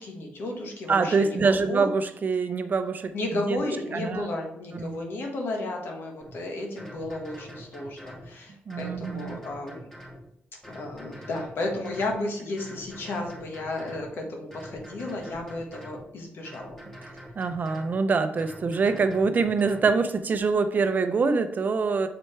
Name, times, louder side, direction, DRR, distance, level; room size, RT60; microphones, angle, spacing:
voice 1, 0.0-1.9 3.1-9.8 10.7-16.8, left 2 dB, 75° left, 1 dB, 1.4 m, -33 dB
voice 2, 0.9-3.6 3.9-4.2 4.7-5.0 8.7-9.4 17.4-22.1, right 4 dB, 50° right, 9 dB, 0.6 m, -25 dB
sound 1, 6.2-6.4 6.8-8.3 8.7-10.2 10.6-12.2 12.6-14.1 14.5-16.0 16.4-18.0 18.4-19.9, equal, 10° left, 2.1 m, -45 dB
6.8 x 4.4 x 3.3 m, 0.74 s
cardioid pair, 75°, 4 cm